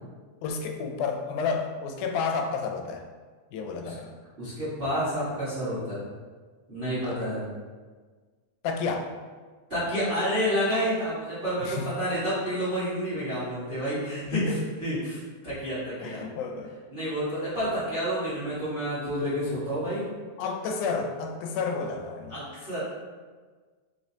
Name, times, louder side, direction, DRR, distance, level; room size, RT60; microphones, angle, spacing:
voice 1, 0.4-3.0 3.5-4.1 7.0-7.2 8.6-9.1 11.6-11.9 14.3-14.6 16.0-16.7 20.4-22.4, left 4 dB, 85° left, 4 dB, 2.0 m, -31 dB
voice 2, 4.4-6.0 6.7-7.5 9.7-16.2 16.9-20.1 22.3-22.8, equal, 90° right, -13 dB, 0.5 m, -29 dB
5.0 x 3.1 x 2.8 m, 1.4 s
omnidirectional pair, 3.6 m